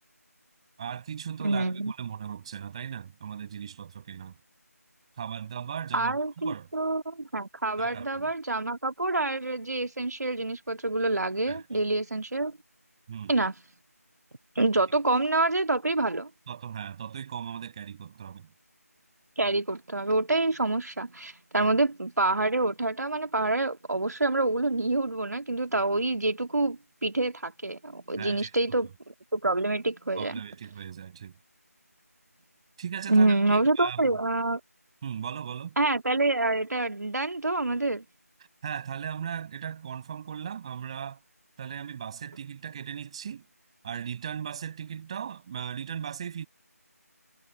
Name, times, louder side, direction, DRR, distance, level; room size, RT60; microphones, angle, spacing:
voice 1, 0.8-4.4 5.2-6.7 7.8-8.3 11.5-11.6 13.1-13.3 16.5-18.5 21.6-21.7 28.2-28.5 30.1-31.4 32.8-34.2 35.0-35.8 38.6-41.2 41.6-43.5 43.8-46.5, right 8 dB, 20° right, 7.1 m, -37 dB
voice 2, 1.4-1.9 5.9-12.6 13.3-13.5 14.5-16.3 19.4-28.9 29.3-30.4 33.1-34.6 35.8-38.0, right 2 dB, 85° right, 1.8 m, -27 dB
figure-of-eight pair, 170°, 9 cm